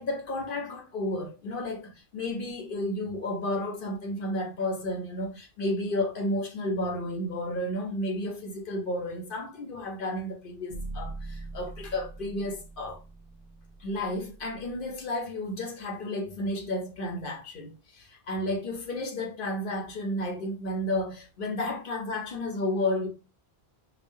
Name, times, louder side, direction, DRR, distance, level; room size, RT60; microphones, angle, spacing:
voice 1, 0.0-13.0 13.8-23.1, left 1 dB, 60° left, 0.9 m, -32 dB
sound 1, 10.7-14.9, right 2 dB, 40° right, 0.9 m, -42 dB
5.0 x 2.2 x 2.6 m
omnidirectional pair, 1.1 m